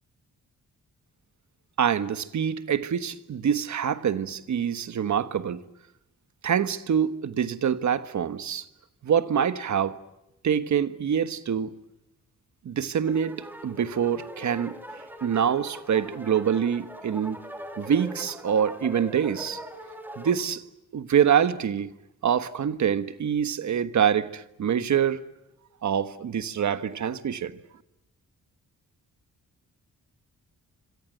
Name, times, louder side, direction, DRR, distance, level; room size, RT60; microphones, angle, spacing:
voice 1, 1.8-5.6 6.4-8.7 9.0-10.0 10.4-11.8 12.6-17.4 17.8-19.6 20.2-20.6 20.9-21.9 22.2-25.2 25.8-27.6, right 8 dB, 65° right, 1.4 m, -25 dB
sound 1, 13.0-20.4, equal, 5° right, 3.1 m, -41 dB
26.5 x 26.0 x 7.9 m
wide cardioid pair, 135°, 32 cm